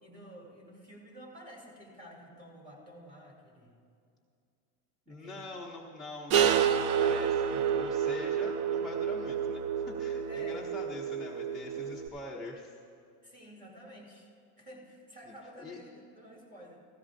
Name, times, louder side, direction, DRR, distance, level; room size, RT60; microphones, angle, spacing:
voice 1, 0.0-3.7 5.1-5.5 10.3-10.7 13.2-14.3 14.6-16.8, equal, 15° right, -2 dB, 2.5 m, -51 dB
voice 2, 5.1-12.8 15.6-15.8, left 2 dB, ahead, -7 dB, 0.3 m, -44 dB
sound 1, 6.3-12.1, right 8 dB, 55° right, 0.5 m, -29 dB
17.0 x 14.0 x 2.5 m, 2.4 s
supercardioid pair, 145°, 46 cm